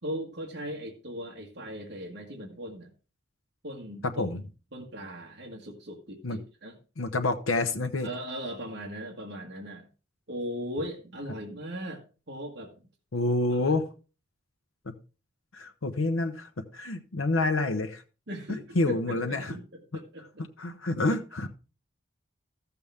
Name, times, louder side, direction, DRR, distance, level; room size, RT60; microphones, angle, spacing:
voice 1, 0.0-2.9 3.6-4.2 4.7-6.8 8.0-9.9 10.3-12.7 13.5-13.7 18.3-20.5, equal, 60° right, -2 dB, 1.7 m, -38 dB
voice 2, 4.0-4.4 6.2-6.4 7.0-8.1 13.1-13.9 14.9-15.0 15.5-18.0 18.5-19.6 20.6-21.5, left 2 dB, 90° left, 5 dB, 0.8 m, -28 dB
14.5 x 6.9 x 3.5 m, 0.34 s
head